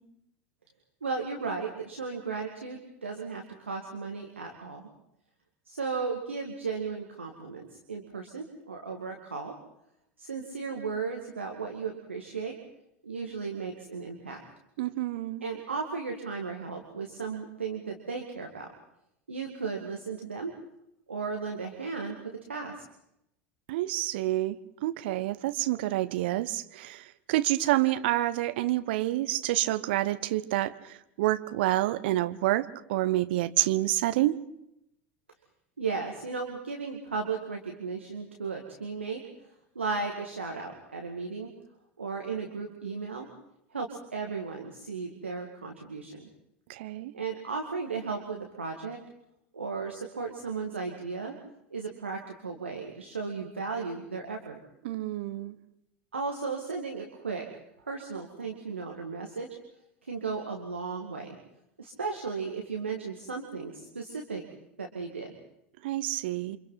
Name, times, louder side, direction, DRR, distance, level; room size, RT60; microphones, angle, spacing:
voice 1, 1.0-4.8 5.7-9.5 10.2-12.6 13.0-14.4 15.4-18.7 19.3-20.5 21.1-22.2 22.5-22.8 35.8-39.2 39.8-41.5 42.0-43.3 43.7-46.3 47.1-49.0 49.5-51.3 51.7-54.6 56.1-57.5 57.9-59.6 60.1-61.4 61.8-64.4 64.8-65.3, right 4 dB, 80° right, 2 dB, 2.2 m, -35 dB
voice 2, 14.8-15.4 23.7-24.6 24.8-34.4 46.7-47.1 54.8-55.6 65.8-66.6, right 15 dB, 60° right, 13 dB, 1.1 m, -28 dB
29.0 x 26.0 x 4.1 m, 0.78 s
figure-of-eight pair, 75°, 6 cm